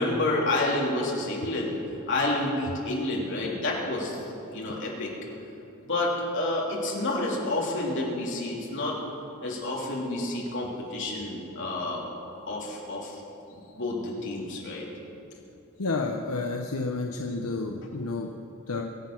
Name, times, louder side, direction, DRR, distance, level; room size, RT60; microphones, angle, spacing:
voice 1, 0.0-1.7 2.1-4.2 4.5-5.1 5.8-9.0 9.4-12.0 12.5-13.2 13.5-14.9, left 2 dB, 55° left, -3 dB, 3.0 m, -29 dB
voice 2, 15.8-18.3 18.7-18.8, left 3 dB, 80° left, 2 dB, 0.8 m, -30 dB
23.0 x 7.7 x 6.0 m, 2.9 s
head